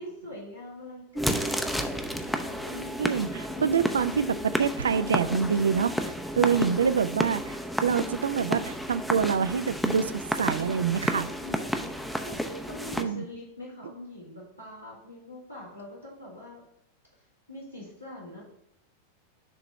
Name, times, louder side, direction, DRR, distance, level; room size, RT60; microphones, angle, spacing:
voice 1, 0.0-3.0 3.5-3.9 4.9-5.1 6.4-6.7 10.9-16.6 17.5-18.4, left 1 dB, 85° left, -7 dB, 2.6 m, -43 dB
sound 1, 1.1-13.0, equal, ahead, 0.5 m, -31 dB
voice 2, 3.0-11.3 13.0-13.2, right 6 dB, 70° right, 14 dB, 0.3 m, -26 dB
6.9 x 3.0 x 5.7 m, 0.80 s
figure-of-eight pair, 90°, 0 cm